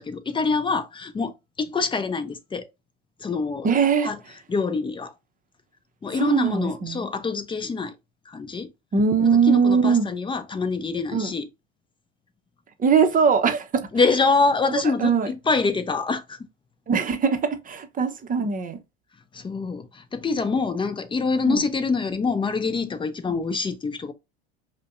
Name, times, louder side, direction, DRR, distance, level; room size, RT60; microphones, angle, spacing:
voice 1, 0.0-2.7 3.2-3.7 4.0-5.1 6.0-8.0 8.3-8.7 9.4-11.5 13.9-16.4 19.3-24.1, left 4 dB, 15° left, 0.6 m, -25 dB
voice 2, 3.6-4.1 6.2-7.0 8.9-10.1 11.1-11.3 12.8-13.9 15.0-15.3 16.9-18.8 21.5-21.6 23.3-23.4, right 6 dB, 25° right, 0.8 m, -21 dB
5.0 x 2.2 x 2.5 m
hypercardioid pair, 85°, 31 cm